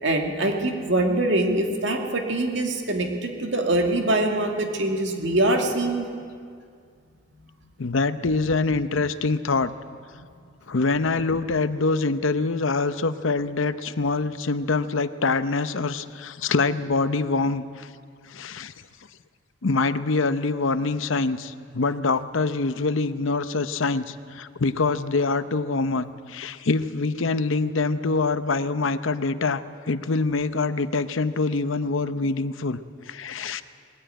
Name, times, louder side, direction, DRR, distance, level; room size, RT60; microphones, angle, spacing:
voice 1, 0.0-6.1, right 1 dB, 60° right, 2 dB, 2.3 m, -23 dB
voice 2, 7.8-9.7 10.7-17.9 18.3-18.7 19.6-32.8 33.1-33.6, left 3 dB, 70° left, 12 dB, 0.7 m, -25 dB
20.0 x 14.0 x 9.2 m, 2.2 s
head